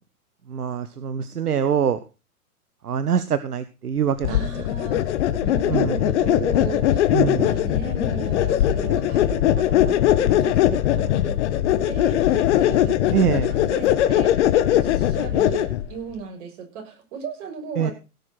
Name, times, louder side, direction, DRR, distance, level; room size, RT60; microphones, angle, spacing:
voice 1, 0.5-2.0 2.8-4.4 5.7-5.9 7.1-7.5 13.1-13.5 17.8-17.9, right 8 dB, 80° right, 13 dB, 1.1 m, -23 dB
sound 1, 4.2-15.9, left 12 dB, 50° left, 1.5 m, -20 dB
voice 2, 4.3-17.9, right 6 dB, 50° right, 3 dB, 6.7 m, -36 dB
17.5 x 6.7 x 5.8 m, 0.31 s
hypercardioid pair, 120°, 45 cm